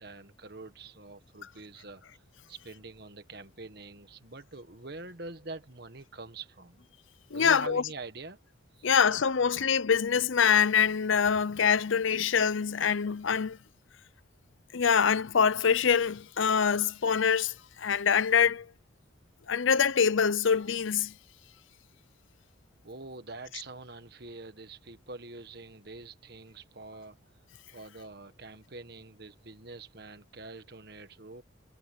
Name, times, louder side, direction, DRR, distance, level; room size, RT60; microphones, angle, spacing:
voice 1, 0.0-6.8 7.3-8.4 8.7-8.9 22.8-27.2 27.7-31.4, right 3 dB, 50° right, 1.5 m, -45 dB
voice 2, 7.3-7.8 8.8-13.6 14.7-18.7 19.5-21.1, left 7 dB, 75° left, 0.6 m, -25 dB
head